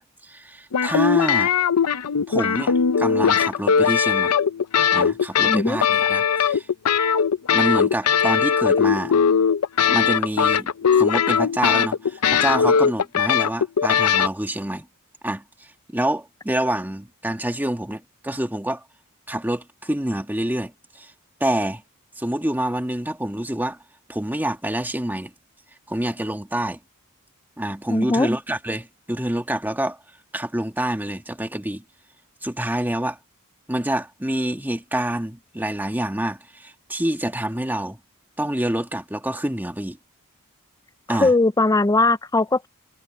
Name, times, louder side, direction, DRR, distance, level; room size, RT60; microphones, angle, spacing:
voice 1, 0.0-1.5 2.3-4.3 4.9-6.7 7.5-9.1 9.9-10.7 11.0-14.9 15.2-18.8 19.3-21.1 21.4-21.8 22.2-23.8 24.1-25.3 25.9-26.8 27.6-30.0 30.3-31.8 32.4-33.2 33.7-38.0 38.4-40.0 41.1-41.3, right 1 dB, 10° right, 1.5 m, -27 dB
sound 1, 0.7-14.3, left 7 dB, 85° left, 0.6 m, -19 dB
voice 2, 5.5-5.8 27.9-28.3 41.2-42.7, left 2 dB, 15° left, 0.5 m, -19 dB
head